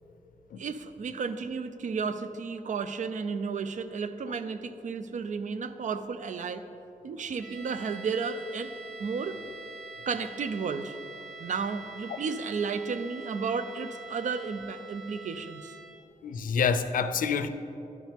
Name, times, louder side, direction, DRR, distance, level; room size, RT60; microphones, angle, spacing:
voice 1, 0.6-6.6 7.0-8.7 9.0-9.4 10.1-11.0 11.4-15.7, right 5 dB, 65° right, 11 dB, 0.4 m, -33 dB
sound 1, 7.4-16.1, right 3 dB, 80° right, 1.3 m, -45 dB
voice 2, 16.2-17.5, left 6 dB, 80° left, 11 dB, 0.4 m, -27 dB
12.0 x 6.2 x 3.4 m, 2.9 s
wide cardioid pair, 100°, 14 cm